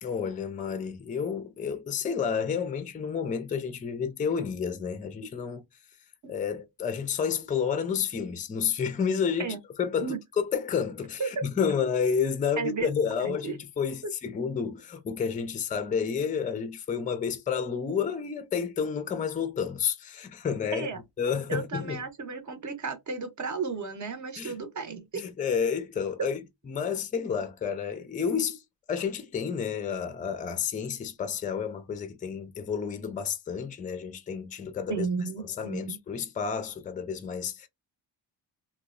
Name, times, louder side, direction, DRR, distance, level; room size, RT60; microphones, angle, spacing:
voice 1, 0.0-5.6 6.3-20.9 21.2-22.0 24.4-24.5 25.1-28.6 28.9-35.1 35.4-37.7, left 6 dB, 20° left, 0.4 m, -30 dB
voice 2, 12.6-12.9 13.2-13.5 20.7-21.0 21.5-25.2 34.9-36.0, right 4 dB, 40° right, 0.8 m, -33 dB
2.9 x 2.2 x 2.3 m
cardioid pair, 115°, 44 cm